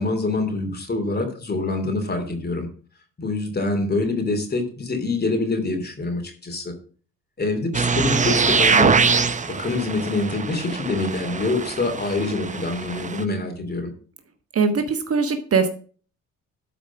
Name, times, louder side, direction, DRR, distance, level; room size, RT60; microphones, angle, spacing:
voice 1, 0.0-2.7 3.2-6.7 7.4-9.0 9.4-13.9, left 3 dB, 30° left, 5 dB, 2.9 m, -25 dB
sound 1, 7.7-13.2, right 5 dB, 25° right, 0.8 m, -23 dB
voice 2, 14.5-15.7, right 5 dB, 50° right, 7 dB, 1.4 m, -21 dB
12.5 x 5.0 x 5.9 m, 0.42 s
cardioid pair, 90°, 30 cm